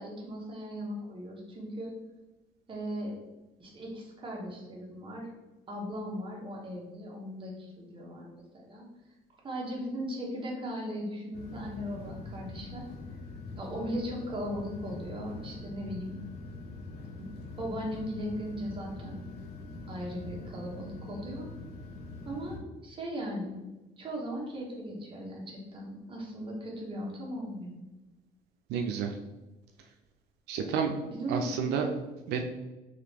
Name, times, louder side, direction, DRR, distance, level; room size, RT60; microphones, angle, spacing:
voice 1, 0.0-1.9 2.7-3.1 3.6-5.3 5.7-8.9 9.4-12.9 13.5-16.2 17.2-17.3 17.6-19.2 19.9-21.5 22.2-22.6 22.8-23.6 24.0-27.7 30.6-30.7 31.1-31.5, equal, 30° right, -2 dB, 1.3 m, -38 dB
sound 1, 11.3-22.6, left 3 dB, 75° left, 1.1 m, -44 dB
voice 2, 28.7-29.1 30.5-30.9 31.3-31.9 32.3-32.4, right 7 dB, 85° right, 4 dB, 0.4 m, -30 dB
3.9 x 3.1 x 3.3 m, 1.1 s
cardioid pair, 110°, 17 cm